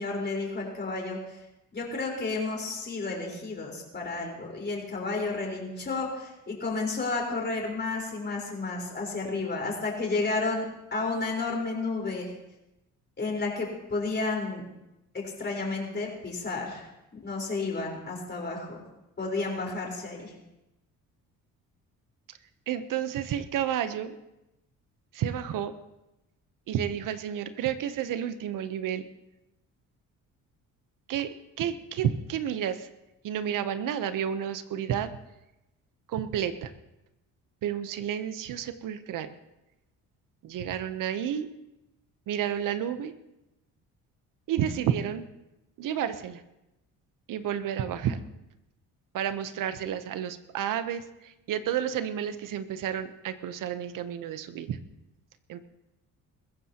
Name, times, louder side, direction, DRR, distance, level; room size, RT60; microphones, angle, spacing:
voice 1, 0.0-1.4 1.7-10.6 10.9-12.3 13.2-14.6 15.1-16.9 17.2-18.8 19.2-20.3, left 3 dB, 30° left, -1 dB, 4.3 m, -31 dB
voice 2, 22.7-24.2 25.1-25.7 26.7-29.1 31.1-31.3 31.6-32.9 33.2-35.2 36.1-36.7 37.6-39.3 40.4-41.5 42.3-43.1 44.5-45.3 45.8-46.4 47.3-48.2 49.1-54.8 55.5-55.6, right 9 dB, 70° right, 11 dB, 0.9 m, -31 dB
21.5 x 15.0 x 2.9 m, 0.93 s
cardioid pair, 110°, 33 cm